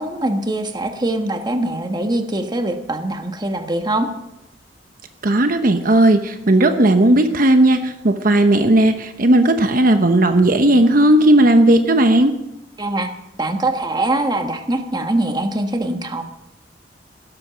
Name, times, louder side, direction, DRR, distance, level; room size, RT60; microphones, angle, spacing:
voice 1, 0.0-4.1 12.8-13.1 13.4-16.2, right 1 dB, 25° right, 6 dB, 1.3 m, -22 dB
voice 2, 5.2-12.3, right 1 dB, 50° right, 7 dB, 1.0 m, -14 dB
17.0 x 13.0 x 5.2 m, 0.90 s
head